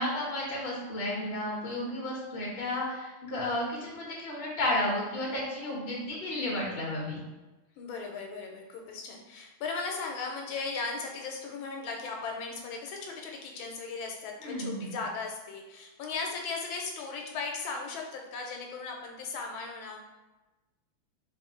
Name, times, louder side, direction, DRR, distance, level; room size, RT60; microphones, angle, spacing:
voice 1, 0.0-7.2 14.4-14.9, left 1 dB, 35° left, -5 dB, 1.1 m, -32 dB
voice 2, 7.8-20.0, left 4 dB, 85° left, 1 dB, 1.4 m, -37 dB
3.7 x 2.9 x 3.7 m, 1.1 s
omnidirectional pair, 2.2 m